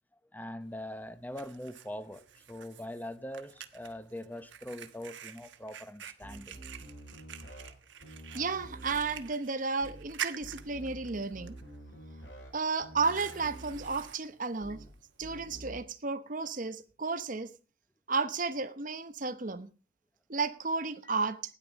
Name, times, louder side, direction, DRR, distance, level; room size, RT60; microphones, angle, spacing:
voice 1, 0.3-6.6, left 1 dB, 10° left, 0.8 m, -42 dB
Fire, 0.6-15.6, right 8 dB, 65° right, 1.3 m, -48 dB
sound 1, 6.2-7.7 8.0-9.2 9.8-10.1 10.4-12.5 12.8-14.0 14.6-14.9 15.2-15.8, right 1 dB, 65° left, 5.2 m, -48 dB
voice 2, 8.3-11.5 12.5-14.8 15.2-17.5 18.1-19.7 20.3-21.4, right 4 dB, 40° right, 0.9 m, -33 dB
16.0 x 10.5 x 5.2 m
head